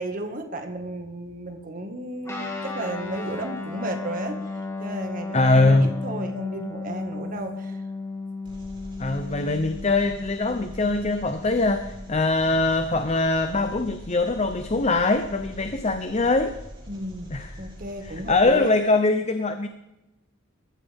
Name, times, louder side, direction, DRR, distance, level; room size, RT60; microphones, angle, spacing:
voice 1, 0.0-4.4 4.8-7.8 16.9-17.3 17.6-18.7, right 1 dB, 40° right, 5 dB, 1.8 m, -33 dB
Guitar, 2.2-12.2, left 3 dB, 15° left, 2.6 m, -34 dB
voice 2, 5.3-6.0 9.0-16.6 17.3-17.5 18.0-19.7, left 3 dB, 30° left, 8 dB, 0.7 m, -22 dB
Engine, 8.4-18.4, equal, 25° right, 4.4 m, -43 dB
22.0 x 14.0 x 3.6 m, 0.99 s
head